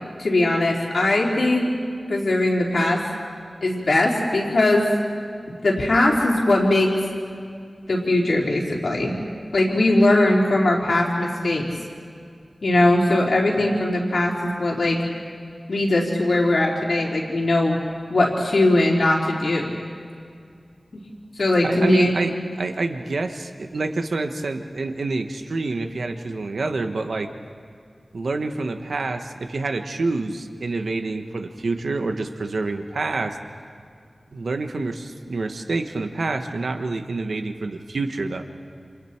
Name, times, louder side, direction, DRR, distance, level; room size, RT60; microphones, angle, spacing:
voice 1, 0.2-1.7 2.1-3.0 3.6-4.9 5.6-6.9 7.9-9.1 9.5-11.7 12.6-15.0 15.7-17.8 18.1-19.7 21.4-22.1, left 2 dB, 85° left, -3 dB, 4.0 m, -20 dB
voice 2, 21.7-22.3 22.6-27.3 28.1-33.4 34.3-38.4, right 3 dB, 90° right, 6 dB, 1.3 m, -27 dB
29.0 x 28.0 x 4.6 m, 2.2 s
wide cardioid pair, 70°, 0 cm